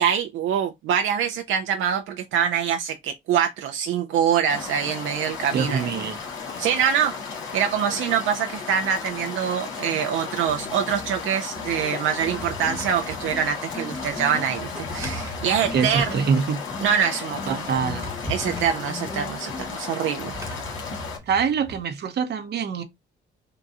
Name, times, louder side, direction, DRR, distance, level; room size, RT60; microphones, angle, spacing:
voice 1, 0.0-5.9 6.6-7.1 7.5-16.3 16.8-17.7 18.3-20.4, right 8 dB, 80° right, 0.5 m, -24 dB
sound 1, 4.5-21.2, left 5 dB, 85° left, 1.5 m, -35 dB
voice 2, 5.5-6.2 15.7-16.6 17.7-18.1 21.3-22.8, right 6 dB, 55° right, 0.8 m, -24 dB
sound 2, 10.3-15.3 15.6-17.0 17.3-19.9, left 3 dB, 20° left, 0.7 m, -39 dB
Drawer open or close, 12.1-13.4 14.5-16.2 17.5-18.9 20.2-21.8, equal, 15° right, 1.1 m, -38 dB
3.9 x 2.3 x 4.0 m
cardioid pair, 90°, 20 cm